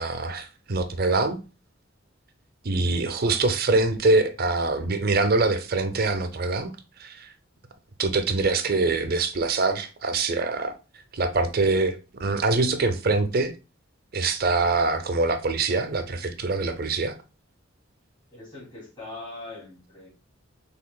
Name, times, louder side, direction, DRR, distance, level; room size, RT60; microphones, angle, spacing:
voice 1, 0.0-1.4 2.6-6.7 7.0-7.3 8.0-10.7 11.1-13.5 14.1-17.2, right 3 dB, 50° right, 0.6 m, -24 dB
voice 2, 3.0-3.4 8.6-8.8 18.3-20.1, left 2 dB, 25° left, 2.6 m, -42 dB
5.8 x 3.5 x 2.2 m
head